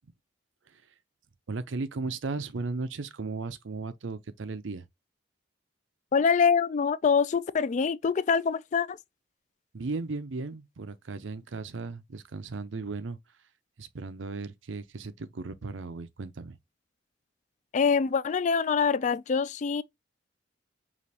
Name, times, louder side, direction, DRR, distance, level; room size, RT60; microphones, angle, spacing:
voice 1, 1.5-4.8 9.7-13.2 13.8-16.6, right 3 dB, 85° right, 0.6 m, -36 dB
voice 2, 6.1-9.0 17.7-19.8, left 6 dB, 40° left, 0.3 m, -25 dB
5.0 x 2.9 x 2.8 m
head